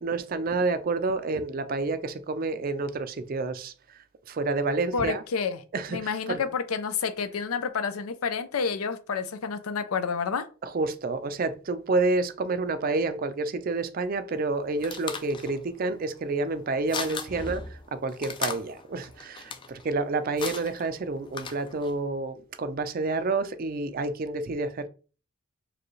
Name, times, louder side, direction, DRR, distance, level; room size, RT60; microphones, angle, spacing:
voice 1, 0.0-5.2 5.7-6.4 10.6-24.9, right 3 dB, 40° right, 0.4 m, -29 dB
voice 2, 4.9-5.6 5.9-10.5, left 5 dB, 90° left, 0.5 m, -29 dB
sound 1, 14.3-22.0, left 5 dB, 25° left, 0.3 m, -39 dB
4.9 x 2.3 x 3.1 m
head